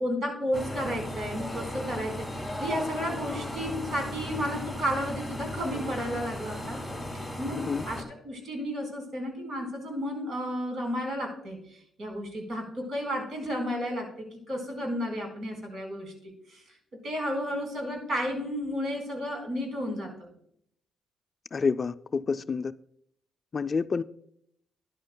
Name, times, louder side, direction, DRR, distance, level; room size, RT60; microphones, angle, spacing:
voice 1, 0.0-6.8 7.4-7.6 7.9-16.6 17.0-20.3, equal, 55° right, 4.2 m, -32 dB
sound 1, 0.5-8.0, left 1 dB, 5° right, 2.3 m, -36 dB
voice 2, 21.5-22.7 23.5-24.0, left 5 dB, 40° left, 0.3 m, -28 dB
13.0 x 10.5 x 2.2 m
cardioid pair, 90°, 0 cm